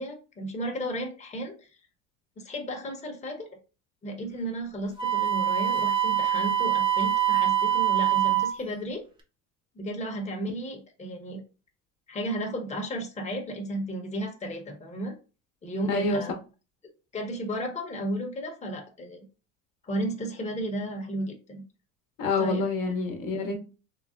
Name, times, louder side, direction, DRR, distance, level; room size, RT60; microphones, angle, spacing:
voice 1, 0.0-1.7 2.4-3.5 4.0-9.0 9.7-11.4 12.1-15.2 15.6-16.3 17.1-19.2 19.8-21.6 22.4-22.6, right 1 dB, 20° left, 0.9 m, -33 dB
Wind instrument woodwind instrument, 5.0-8.5, right 11 dB, 15° right, 0.7 m, -24 dB
voice 2, 15.9-16.2 22.2-23.6, left 3 dB, 60° left, 0.9 m, -27 dB
3.9 x 2.0 x 2.4 m
supercardioid pair, 90°, 36 cm